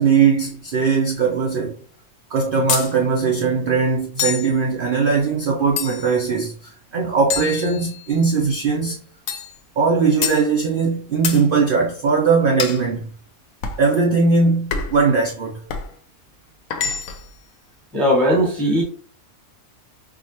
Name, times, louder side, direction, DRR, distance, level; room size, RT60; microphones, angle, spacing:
voice 1, 0.0-1.8 2.3-9.0 9.8-13.1 13.8-15.6, right 5 dB, 55° right, 0.6 m, -19 dB
sound 1, 2.7-2.9 4.2-4.5 5.8-6.2 7.3-8.2 9.3-9.6 10.2-10.5 11.2-11.5 12.6-12.8 13.6-13.9 14.7-15.0 15.7-15.9 16.7-17.3, left 6 dB, 70° left, 1.0 m, -26 dB
voice 2, 17.9-18.8, equal, ahead, 1.1 m, -18 dB
4.7 x 2.3 x 2.8 m
omnidirectional pair, 1.6 m